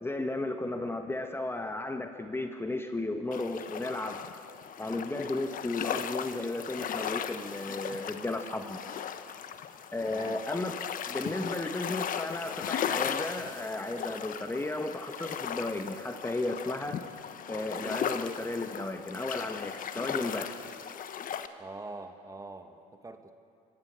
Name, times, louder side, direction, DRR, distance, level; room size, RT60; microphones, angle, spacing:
voice 1, 0.0-4.2 4.8-8.8 9.9-10.8 11.1-17.0 17.5-20.5, left 2 dB, 10° left, 6 dB, 1.5 m, -34 dB
sound 1, 3.3-21.5, left 8 dB, 45° left, 1.2 m, -37 dB
voice 2, 10.0-10.4 21.6-23.3, right 2 dB, 15° right, 7 dB, 1.7 m, -44 dB
25.5 x 15.5 x 7.7 m, 2.7 s
hypercardioid pair, 70°, 19 cm